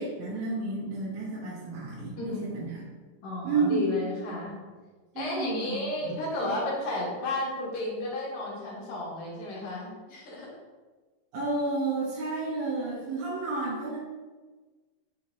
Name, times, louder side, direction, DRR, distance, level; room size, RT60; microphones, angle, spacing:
voice 1, 0.0-2.8 3.4-3.9 5.1-6.2 6.4-6.6 11.3-14.0, right 3 dB, 70° right, -7 dB, 2.1 m, -31 dB
voice 2, 2.2-2.6 3.2-4.6 5.2-10.5, left 2 dB, 65° left, -5 dB, 2.1 m, -33 dB
5.6 x 2.8 x 3.0 m, 1.3 s
omnidirectional pair, 3.9 m